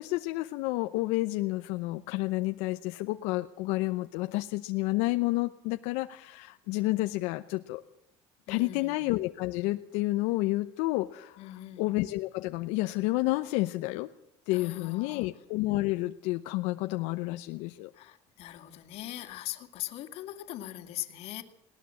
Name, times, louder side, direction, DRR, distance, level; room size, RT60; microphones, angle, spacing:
voice 1, 0.0-7.8 8.5-14.1 14.5-17.9, left 19 dB, 85° left, 8 dB, 0.8 m, -30 dB
voice 2, 8.5-9.1 11.4-11.9 14.5-15.3 17.9-21.4, left 14 dB, 60° left, 8 dB, 2.2 m, -41 dB
19.5 x 19.0 x 7.7 m, 0.72 s
cardioid pair, 155°, 11 cm